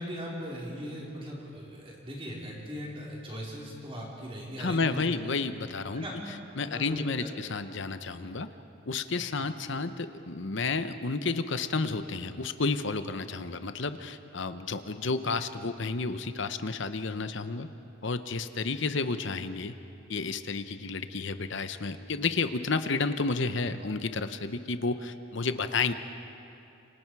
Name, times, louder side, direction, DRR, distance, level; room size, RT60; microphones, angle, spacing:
voice 1, 0.0-5.1 5.9-6.2 6.6-7.3 9.2-9.5, equal, 25° right, -4 dB, 4.2 m, -39 dB
voice 2, 4.6-6.0 6.6-8.5 8.9-17.7 18.0-19.7 20.1-25.9, left 4 dB, 55° left, 10 dB, 0.9 m, -31 dB
28.0 x 25.0 x 4.8 m, 2.8 s
head